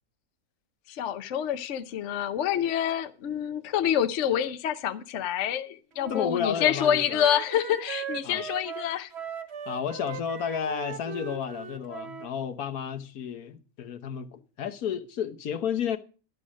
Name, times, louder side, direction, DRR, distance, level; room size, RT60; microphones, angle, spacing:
voice 1, 0.9-9.1, left 9 dB, 60° left, 1.0 m, -27 dB
Wind instrument woodwind instrument, 6.0-12.3, right 8 dB, 55° right, 1.0 m, -39 dB
voice 2, 6.1-7.3 8.2-8.4 9.7-16.0, left 8 dB, 75° left, 1.4 m, -32 dB
11.5 x 7.6 x 6.2 m
omnidirectional pair, 1.6 m